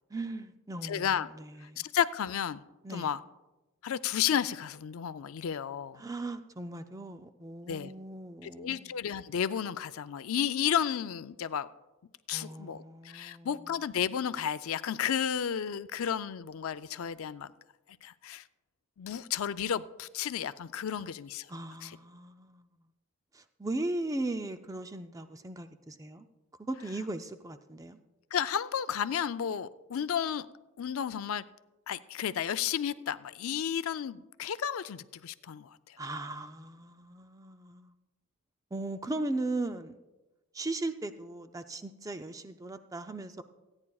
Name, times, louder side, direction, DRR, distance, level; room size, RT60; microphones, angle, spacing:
voice 1, 0.1-1.8 2.8-3.1 6.0-8.9 12.3-13.5 21.5-22.7 23.3-26.3 26.6-28.0 36.0-37.9 38.7-40.0 40.5-43.4, right 2 dB, 15° right, 9 dB, 0.4 m, -38 dB
voice 2, 0.8-1.3 1.6-2.6 2.9-3.2 3.8-6.0 7.6-7.9 8.4-11.7 12.3-17.5 18.0-18.4 19.0-21.5 21.8-22.0 28.3-30.5 30.8-31.4 31.9-36.0, left 8 dB, 75° left, 14 dB, 0.4 m, -32 dB
28.0 x 9.7 x 2.3 m, 1.1 s
head